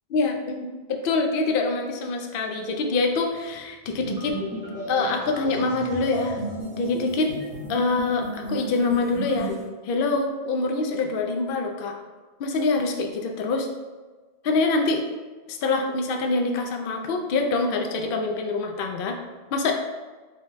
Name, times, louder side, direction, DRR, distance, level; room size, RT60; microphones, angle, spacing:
voice 1, 0.1-4.4 4.9-6.4 6.8-7.3 7.7-9.5 9.8-11.9 12.4-13.7 14.4-15.0 15.5-19.2 19.5-19.7, left 3 dB, 65° left, 3 dB, 0.7 m, -25 dB
sound 1, 4.0-9.6, equal, 60° right, 1.5 m, -33 dB
4.9 x 2.1 x 4.0 m, 1.3 s
omnidirectional pair, 1.1 m